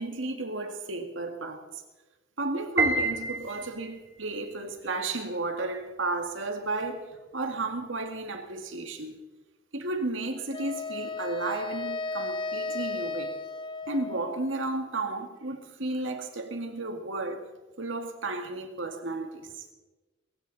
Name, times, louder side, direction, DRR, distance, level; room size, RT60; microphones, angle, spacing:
voice 1, 0.0-1.8 2.4-9.2 9.7-13.4 13.9-17.5 17.8-19.5, right 2 dB, 75° right, 2.0 m, -33 dB
Piano, 2.8-4.1, right 3 dB, 15° right, 2.6 m, -28 dB
Wind instrument woodwind instrument, 10.5-14.7, left 3 dB, 25° left, 0.6 m, -35 dB
22.5 x 15.5 x 4.1 m
head